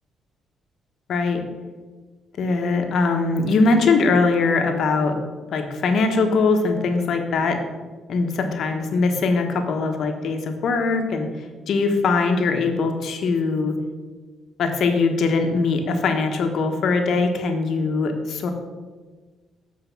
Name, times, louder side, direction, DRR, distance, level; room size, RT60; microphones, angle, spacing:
voice 1, 1.1-1.4 2.4-5.2 5.5-7.6 8.1-11.3 11.7-13.8 14.6-18.5, left 4 dB, 65° left, 5 dB, 1.0 m, -21 dB
8.2 x 4.5 x 5.8 m, 1.4 s
cardioid pair, 90°, 0 cm